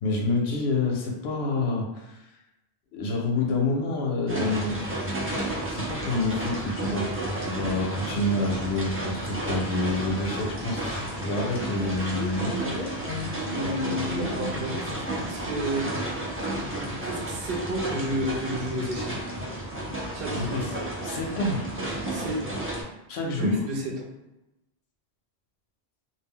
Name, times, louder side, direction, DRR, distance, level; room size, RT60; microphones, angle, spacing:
voice 1, 0.0-2.2 2.9-4.8 5.7-7.1 7.4-12.5 20.4-20.7 21.0-21.6 23.1-23.5, left 2 dB, 85° left, 1 dB, 0.8 m, -28 dB
sound 1, 4.3-22.8, right 1 dB, 20° right, 0.3 m, -32 dB
sound 2, 9.1-15.1, left 2 dB, 55° left, 0.6 m, -38 dB
voice 2, 13.5-15.9 16.7-19.1 20.1-20.6 22.1-22.5 23.4-24.1, equal, 65° right, -1 dB, 0.8 m, -31 dB
2.3 x 2.0 x 3.6 m, 0.93 s
omnidirectional pair, 1.1 m